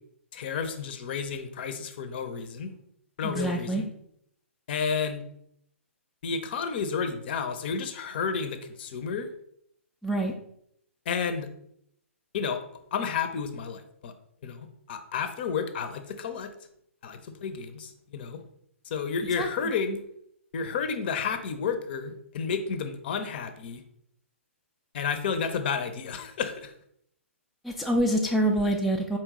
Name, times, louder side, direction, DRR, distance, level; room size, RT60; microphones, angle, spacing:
voice 1, 0.3-2.7 3.2-3.9 4.7-5.2 6.2-9.3 11.1-11.5 12.3-12.6 12.9-14.1 14.4-16.5 17.0-18.4 18.8-20.0 20.5-23.8 24.9-26.7, left 6 dB, 45° left, 9 dB, 0.6 m, -31 dB
voice 2, 3.2-3.8 10.0-10.3 19.4-19.5 27.6-29.2, right 1 dB, ahead, -1 dB, 0.3 m, -26 dB
4.3 x 3.1 x 3.6 m, 0.70 s
figure-of-eight pair, 130°, 8 cm